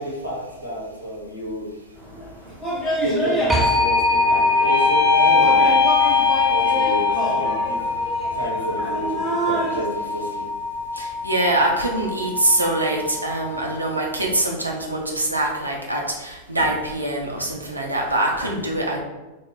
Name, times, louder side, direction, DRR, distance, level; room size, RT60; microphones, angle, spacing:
voice 1, 0.0-1.7 3.0-5.7 6.5-7.8 8.3-10.5, equal, 85° left, -3 dB, 0.7 m, -30 dB
sound 1, 2.0-9.8, right 1 dB, 10° left, 1.0 m, -28 dB
sound 2, 3.5-7.8, left 6 dB, 45° left, 0.6 m, -22 dB
sound 3, 3.5-14.1, left 2 dB, 10° right, 0.4 m, -24 dB
voice 2, 10.9-19.0, right 1 dB, 85° right, -1 dB, 0.5 m, -23 dB
3.0 x 2.0 x 3.4 m, 1.1 s
figure-of-eight pair, 90°, 0 cm